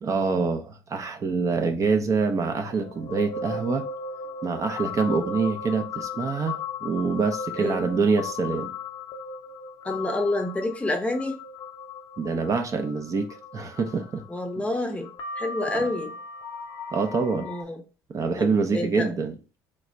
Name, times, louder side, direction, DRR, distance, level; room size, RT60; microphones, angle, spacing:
voice 1, 0.0-3.8 4.4-8.7 12.2-14.2 14.6-14.7 16.9-17.5 18.1-19.3, right 4 dB, 35° right, 0.5 m, -25 dB
sound 1, 2.5-14.4 15.0-17.6, left 4 dB, 55° left, 0.5 m, -36 dB
voice 2, 7.6-8.0 9.8-11.4 14.3-15.1 15.4-16.1 17.4-17.8 18.4-19.1, left 2 dB, 15° left, 0.7 m, -28 dB
3.4 x 2.0 x 3.7 m
supercardioid pair, 85°, 9 cm